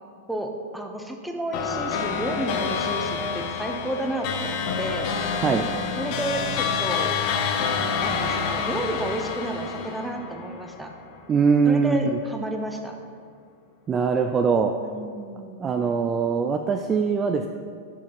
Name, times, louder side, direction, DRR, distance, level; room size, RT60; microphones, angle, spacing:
voice 1, 0.3-5.1 6.0-7.1 7.8-10.9 11.7-13.0 14.8-15.9, right 1 dB, 5° right, 3 dB, 0.7 m, -31 dB
sound 1, 1.5-11.2, left 6 dB, 50° left, 0.8 m, -28 dB
voice 2, 11.3-12.0 13.9-14.7 15.6-17.5, right 5 dB, 20° right, 5 dB, 0.3 m, -22 dB
7.4 x 4.9 x 5.9 m, 2.1 s
supercardioid pair, 140°, 0 cm